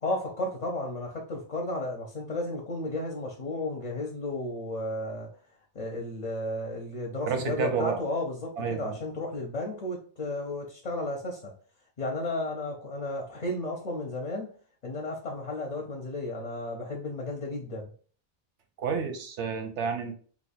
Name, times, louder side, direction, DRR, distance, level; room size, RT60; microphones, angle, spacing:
voice 1, 0.0-5.3 5.7-11.5 12.0-14.5 14.8-17.9, left 2 dB, 45° left, 0 dB, 0.7 m, -33 dB
voice 2, 7.3-8.0 8.6-9.0 18.8-20.2, right 6 dB, 85° right, 6 dB, 1.0 m, -30 dB
2.9 x 2.3 x 4.1 m, 0.43 s
omnidirectional pair, 1.2 m